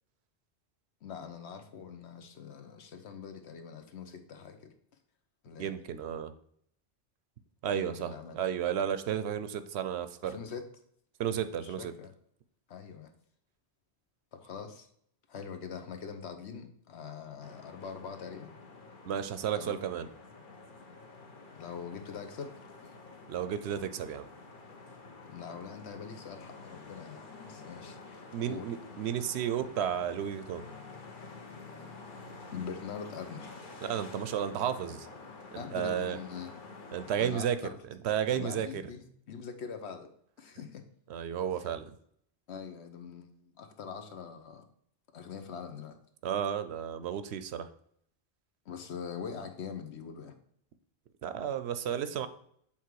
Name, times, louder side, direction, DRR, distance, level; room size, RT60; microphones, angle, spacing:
voice 1, 1.0-4.7 5.4-5.7 7.7-8.4 10.2-10.7 11.6-12.1 12.7-13.1 14.3-14.9 15.3-18.6 19.5-19.8 21.5-22.6 25.3-28.7 32.5-33.5 35.6-36.6 37.2-37.8 38.3-40.1 40.4-40.8 41.5-41.7 42.5-44.6 45.1-46.0 48.7-50.4, left 6 dB, 75° left, 7 dB, 1.1 m, -43 dB
voice 2, 5.6-6.3 7.6-10.4 11.2-11.9 19.0-20.1 23.3-24.3 28.3-30.6 33.8-35.1 35.5-36.2 36.9-37.6 37.9-38.8 41.1-41.9 46.2-47.7 51.2-52.3, right 9 dB, 75° right, 12 dB, 0.8 m, -33 dB
sound 1, 17.4-37.3, left 3 dB, 50° left, 1.0 m, -49 dB
7.4 x 3.6 x 4.6 m, 0.67 s
omnidirectional pair, 1.1 m